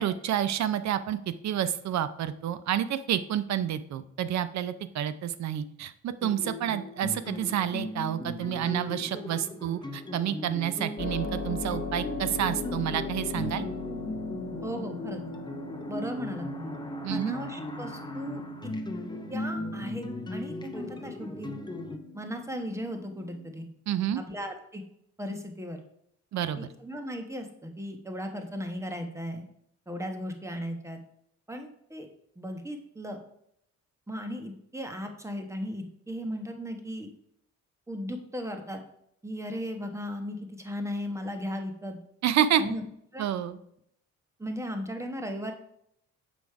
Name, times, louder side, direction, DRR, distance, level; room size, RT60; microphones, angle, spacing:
voice 1, 0.0-13.7 17.0-17.4 23.9-24.2 26.3-26.7 42.2-42.6 43.2-43.6, right 10 dB, 65° right, 13 dB, 0.6 m, -29 dB
sound 1, 6.2-22.0, left 1 dB, 15° left, 0.8 m, -37 dB
Keyboard (musical), 11.0-23.5, left 4 dB, 35° left, 1.6 m, -40 dB
voice 2, 14.6-15.2 15.9-16.7 17.1-18.7 19.3-21.5 22.1-23.7 24.1-24.8 25.2-25.8 26.6-29.4 29.9-31.0 31.5-32.1 32.4-33.2 34.1-37.1 37.9-38.8 39.2-42.0 42.6-42.8 43.1-43.3 44.4-45.5, equal, 10° right, 5 dB, 1.1 m, -36 dB
6.3 x 5.1 x 4.7 m, 0.74 s
cardioid pair, 90°, 30 cm